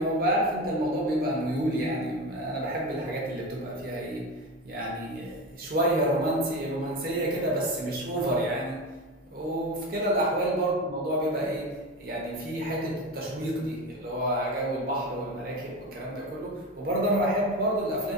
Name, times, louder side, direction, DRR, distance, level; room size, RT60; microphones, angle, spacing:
voice 1, 0.0-9.0 9.3-18.1, right 1 dB, 55° right, 0.8 m, -29 dB
3.7 x 2.2 x 2.6 m
head